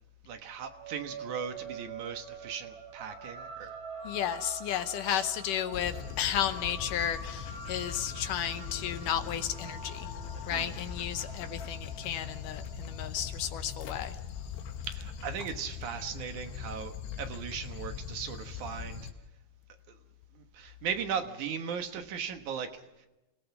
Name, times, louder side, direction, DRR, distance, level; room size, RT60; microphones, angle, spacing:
voice 1, 0.2-3.7 5.1-5.3 10.5-10.7 14.8-19.1 19.9-20.0 20.3-23.1, right 7 dB, 60° right, 7 dB, 2.3 m, -38 dB
sound 1, 0.6-15.3, right 3 dB, 25° right, 4.2 m, -46 dB
voice 2, 4.0-10.1 10.5-14.1, left 10 dB, 75° left, 10 dB, 2.0 m, -33 dB
Dog, 5.7-19.1, left 7 dB, 90° left, 3.6 m, -41 dB
28.5 x 17.0 x 6.0 m, 1.0 s
omnidirectional pair, 4.7 m